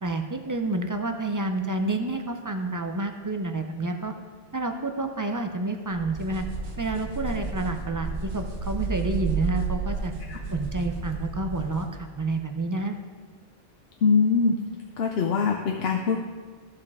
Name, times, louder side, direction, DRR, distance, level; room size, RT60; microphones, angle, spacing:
voice 1, 0.0-4.1 4.5-6.4 6.8-10.1 10.5-13.0, right 2 dB, 30° right, 5 dB, 0.4 m, -29 dB
sound 1, 5.9-11.9, right 5 dB, 60° right, 1.1 m, -32 dB
voice 2, 14.0-14.6 15.0-16.2, left 5 dB, 75° left, 3 dB, 0.8 m, -22 dB
14.0 x 5.1 x 3.6 m, 1.5 s
omnidirectional pair, 1.1 m